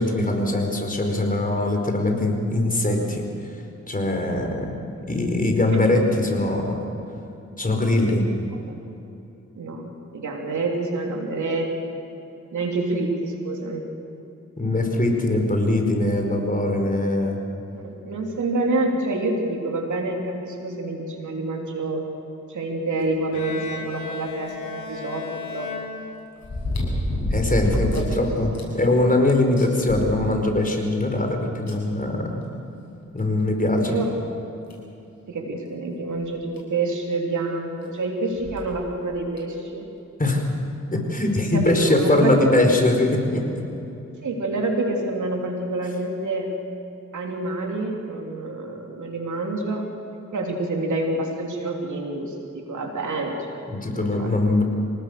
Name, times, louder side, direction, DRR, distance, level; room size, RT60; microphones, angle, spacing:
voice 1, 0.0-3.2 3.9-4.7 5.1-6.8 7.6-8.3 14.6-17.4 27.3-32.4 33.1-34.0 40.2-40.4 40.9-43.4 53.7-54.6, left 2 dB, 30° left, 2 dB, 4.8 m, -22 dB
voice 2, 8.5-8.8 9.5-12.0 12.5-13.9 17.7-22.0 22.5-25.7 27.7-28.2 28.5-28.8 33.9-34.2 35.3-39.9 41.5-42.6 44.2-46.5 47.1-49.8 50.3-54.4, right 2 dB, 90° right, 1 dB, 3.3 m, -28 dB
Bowed string instrument, 23.3-26.7, left 5 dB, 80° left, 3.2 m, -36 dB
sound 1, 24.5-24.6 26.4-28.1 28.5-28.6 29.1-29.2 29.6-30.7 31.7-31.8 33.2-33.3 33.9-34.0 34.7-34.9 36.2-36.3 36.6-36.7 38.4-38.7 39.4-39.5, left 1 dB, 65° left, 7.5 m, -27 dB
26.0 x 19.0 x 6.8 m, 2.9 s
cardioid pair, 65°, 29 cm